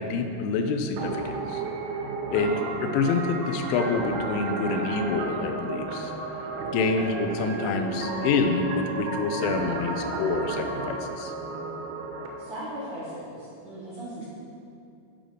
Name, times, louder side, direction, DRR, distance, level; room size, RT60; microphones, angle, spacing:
voice 1, 0.0-1.6 2.3-6.1 6.4-6.5 6.7-11.3, left 4 dB, 90° left, 5 dB, 3.0 m, -27 dB
sound 1, 1.0-12.3, right 3 dB, 85° right, 2.9 m, -33 dB
voice 2, 12.4-14.2, right 1 dB, 65° right, -11 dB, 1.8 m, -38 dB
9.4 x 3.8 x 5.0 m, 2.5 s
omnidirectional pair, 5.4 m